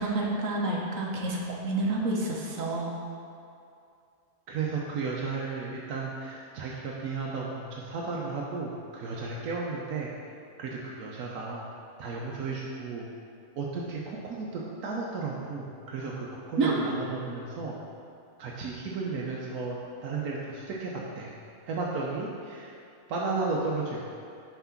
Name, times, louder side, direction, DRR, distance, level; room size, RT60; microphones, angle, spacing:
voice 1, 0.0-2.9 16.6-16.7, right 2 dB, 65° right, -1 dB, 1.3 m, -29 dB
voice 2, 4.5-10.1 10.6-11.7 12.0-13.0 13.6-17.8 18.4-19.8 20.0-20.9 21.2-21.3 21.7-22.7 23.1-24.2, right 4 dB, 85° right, -3 dB, 1.2 m, -34 dB
5.8 x 4.8 x 5.8 m, 2.5 s
omnidirectional pair, 1.5 m